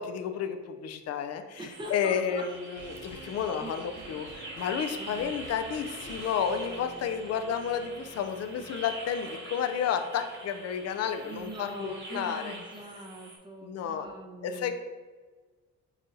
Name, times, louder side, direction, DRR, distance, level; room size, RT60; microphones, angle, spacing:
voice 1, 0.0-12.5 13.6-14.1 14.4-14.7, left 7 dB, 55° left, 8 dB, 0.5 m, -31 dB
voice 2, 1.6-2.4 3.1-4.2 4.9-5.3 11.2-14.7, right 1 dB, 15° right, 0 dB, 1.0 m, -43 dB
sound 1, 1.7-13.4, right 2 dB, 40° right, 1.1 m, -44 dB
sound 2, 2.5-11.8 12.1-12.2, right 3 dB, 90° right, 0.9 m, -51 dB
7.1 x 2.7 x 2.7 m, 1.4 s
cardioid pair, 90°, 30 cm